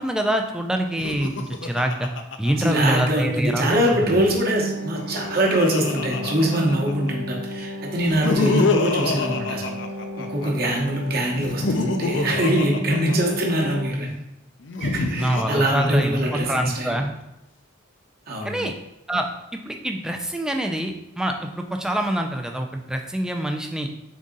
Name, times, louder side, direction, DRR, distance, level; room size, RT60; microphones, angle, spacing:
voice 1, 0.0-2.1 2.4-3.8 15.2-17.1 18.4-18.7 19.1-19.3 19.7-23.9, right 1 dB, 5° right, 4 dB, 0.3 m, -25 dB
Laughter, 0.9-3.4 4.7-7.1 8.0-10.5 11.3-13.8 14.6-16.5, left 3 dB, 60° left, 0.4 m, -27 dB
voice 2, 2.6-9.7 10.2-14.2 14.8-17.0 18.3-18.7, right 1 dB, 45° right, -1 dB, 0.9 m, -23 dB
sound 1, 4.0-13.9, equal, 85° right, 0.6 m, -33 dB
3.9 x 3.6 x 3.7 m, 0.90 s
head